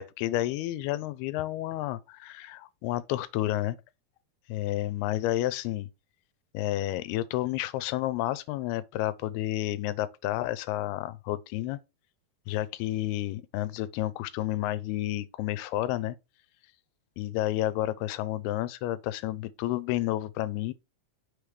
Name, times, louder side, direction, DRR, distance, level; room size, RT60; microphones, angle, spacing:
voice 1, 0.0-3.8 4.5-5.9 6.5-11.8 12.5-16.2 17.2-20.7, left 15 dB, 90° left, 2.6 m, -30 dB
6.2 x 3.2 x 5.1 m
omnidirectional pair, 4.5 m